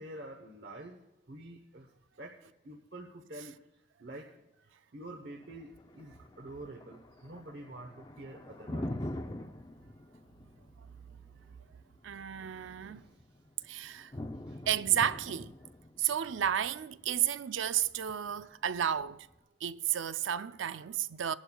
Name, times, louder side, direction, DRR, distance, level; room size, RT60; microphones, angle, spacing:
voice 1, 0.0-1.9 2.2-2.4 2.6-3.6 4.0-4.3 4.6-9.4 12.3-13.2 14.1-14.6, right 1 dB, 60° right, 1.0 m, -48 dB
Thunder, 5.3-19.3, left 1 dB, 25° left, 0.5 m, -45 dB
voice 2, 12.0-13.0 13.7-14.1 14.7-15.5 16.0-19.3 19.6-21.3, right 10 dB, 90° right, 0.5 m, -32 dB
20.0 x 11.5 x 2.3 m
head